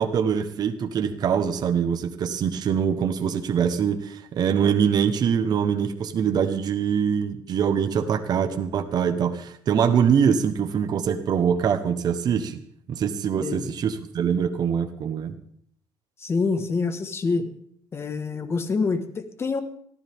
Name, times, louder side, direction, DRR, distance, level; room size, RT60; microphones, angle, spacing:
voice 1, 0.0-12.6 12.9-15.3, right 7 dB, 45° right, 8 dB, 1.2 m, -23 dB
voice 2, 16.2-17.5 17.9-19.6, left 4 dB, 25° left, 10 dB, 1.5 m, -26 dB
23.0 x 14.5 x 3.6 m, 0.64 s
cardioid pair, 130°, 9 cm